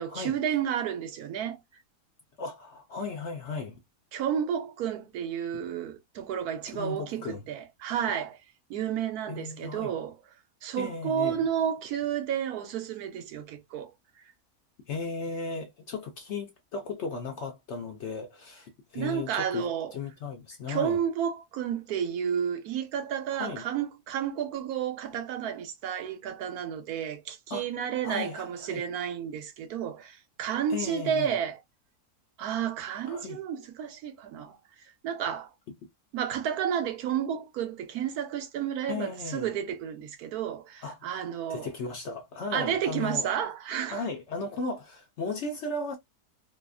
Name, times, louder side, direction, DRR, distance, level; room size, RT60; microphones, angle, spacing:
voice 1, 0.0-1.6 4.1-8.4 8.7-10.2 10.6-13.9 18.9-19.9 20.7-31.6 32.4-34.6 35.0-35.5 36.1-41.7 42.5-44.0, right 8 dB, 80° right, 1.2 m, -31 dB
voice 2, 2.4-3.8 6.7-7.4 9.3-9.9 10.8-11.4 14.9-21.0 23.3-23.6 27.5-27.7 28.0-28.8 30.7-31.4 33.1-33.4 38.9-39.5 40.8-41.1 41.5-43.3 43.9-46.0, left 4 dB, 65° left, 0.7 m, -36 dB
2.8 x 2.4 x 2.3 m
omnidirectional pair, 1.6 m